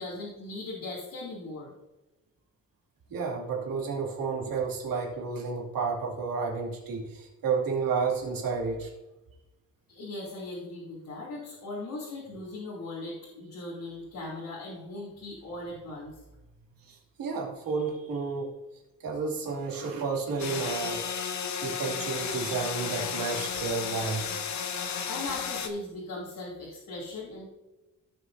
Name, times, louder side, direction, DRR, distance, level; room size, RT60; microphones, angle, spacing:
voice 1, 0.0-1.7 9.9-16.1 25.1-27.5, left 2 dB, 75° left, -7 dB, 2.9 m, -39 dB
voice 2, 3.1-8.9 16.9-18.5 19.0-21.1 21.6-24.2, right 5 dB, 90° right, -1 dB, 2.6 m, -31 dB
sound 1, 20.4-25.7, left 6 dB, 55° left, 0.9 m, -33 dB
16.5 x 6.5 x 2.7 m, 1.0 s
wide cardioid pair, 145°, 33 cm